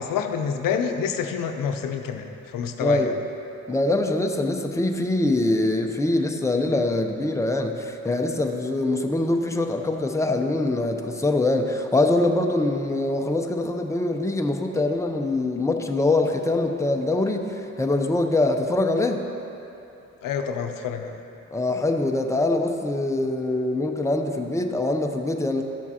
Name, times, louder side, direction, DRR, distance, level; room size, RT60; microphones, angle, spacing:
voice 1, 0.0-3.1 20.2-21.2, left 7 dB, 85° left, 6 dB, 0.6 m, -28 dB
voice 2, 2.8-3.2 3.7-19.2 21.5-25.6, left 2 dB, 10° left, 3 dB, 0.6 m, -23 dB
13.0 x 7.1 x 2.9 m, 2.9 s
cardioid pair, 75°, 32 cm